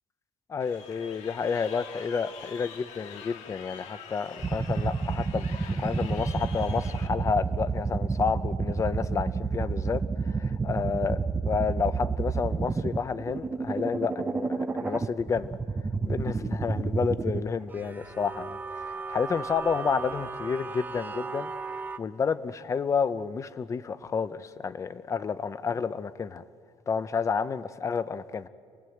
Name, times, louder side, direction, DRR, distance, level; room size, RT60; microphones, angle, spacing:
voice 1, 0.5-11.2 11.4-15.5 16.0-26.4 26.9-28.5, left 5 dB, 25° left, 0.7 m, -30 dB
Crowd, 0.6-7.1, left 7 dB, 85° left, 1.8 m, -45 dB
sound 1, 4.4-17.4 17.7-22.0, right 4 dB, 15° right, 0.7 m, -30 dB
28.5 x 20.0 x 7.9 m
cardioid pair, 150°, 12 cm